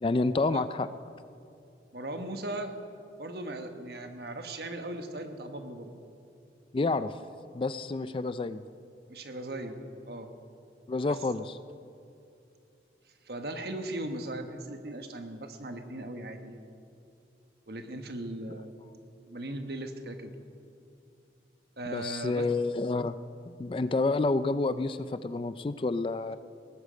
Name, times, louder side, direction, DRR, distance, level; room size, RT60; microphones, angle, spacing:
voice 1, 0.0-0.9 6.7-7.1 7.5-8.6 10.9-11.5 21.9-23.1 23.6-26.4, left 3 dB, 30° left, 13 dB, 0.3 m, -29 dB
voice 2, 1.9-2.7 3.2-5.9 9.1-9.8 10.1-10.3 13.2-16.6 17.7-18.8 19.3-20.3 21.8-22.5, right 1 dB, 60° right, 6 dB, 1.2 m, -38 dB
18.5 x 13.0 x 5.1 m, 2.6 s
head